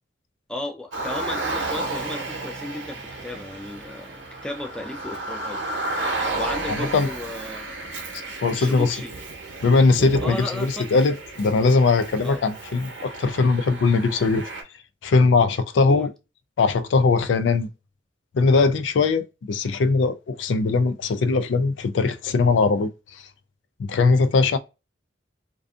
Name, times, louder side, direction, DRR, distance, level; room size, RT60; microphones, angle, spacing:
voice 1, 0.5-5.6 6.4-7.7 8.5-9.1 10.2-11.0 12.2-12.4 15.8-16.1, left 1 dB, 5° left, 0.3 m, -34 dB
Car, 0.9-14.6, right 2 dB, 80° right, 0.8 m, -32 dB
voice 2, 6.7-7.1 8.4-9.0 9.6-14.4 15.0-16.1 16.6-17.7 18.3-22.9 23.8-24.6, left 4 dB, 80° left, 0.4 m, -20 dB
2.5 x 2.3 x 2.4 m
head